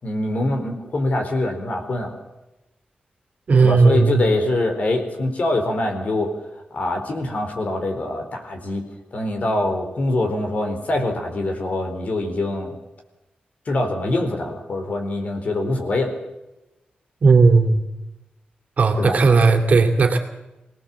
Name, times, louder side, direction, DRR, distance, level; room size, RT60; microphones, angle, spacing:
voice 1, 0.0-2.2 3.6-6.3 6.7-8.8 9.1-12.8 13.7-16.1 19.0-19.4, left 2 dB, 50° left, 4 dB, 4.4 m, -24 dB
voice 2, 3.5-4.2 17.2-17.8 18.8-20.2, right 4 dB, 50° right, 5 dB, 2.6 m, -15 dB
24.5 x 18.5 x 7.4 m, 0.98 s
wide cardioid pair, 170°, 3 cm